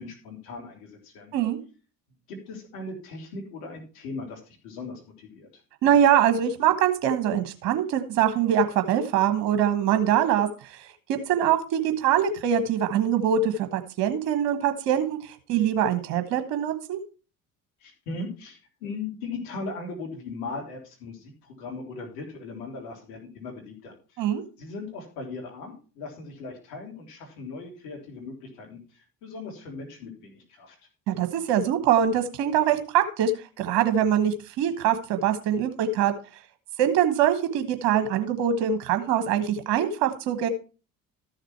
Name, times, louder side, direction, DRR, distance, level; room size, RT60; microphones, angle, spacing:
voice 1, 0.0-1.3 2.3-5.5 17.8-24.2 24.6-30.8, left 3 dB, 75° left, 0 dB, 3.5 m, -38 dB
voice 2, 5.8-17.0 24.2-24.4 31.1-36.1 36.8-40.5, right 9 dB, 65° right, 8 dB, 1.4 m, -23 dB
13.5 x 6.6 x 4.5 m, 0.35 s
hypercardioid pair, 55°, 47 cm